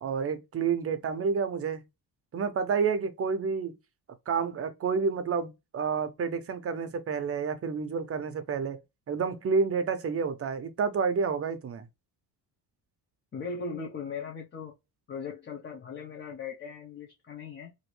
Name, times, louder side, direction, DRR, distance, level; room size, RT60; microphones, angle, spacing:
voice 1, 0.0-1.8 2.3-3.7 4.3-8.8 9.1-11.8, right 5 dB, 35° right, 0.7 m, -29 dB
voice 2, 13.3-14.7 15.1-17.7, left 5 dB, 30° left, 0.9 m, -38 dB
3.0 x 2.6 x 3.1 m
cardioid pair, 125°, 38 cm